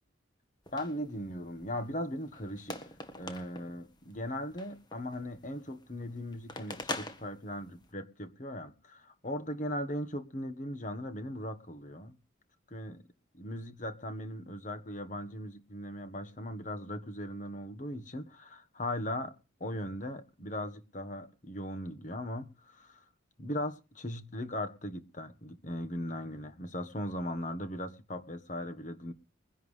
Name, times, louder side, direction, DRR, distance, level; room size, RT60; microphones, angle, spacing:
voice 1, 0.7-12.2 12.7-13.0 13.3-19.3 19.6-23.0 23.4-29.1, left 1 dB, 40° left, 1.4 m, -38 dB
sound 1, 0.7-7.9, left 2 dB, 20° left, 1.5 m, -45 dB
22.5 x 11.0 x 3.3 m
head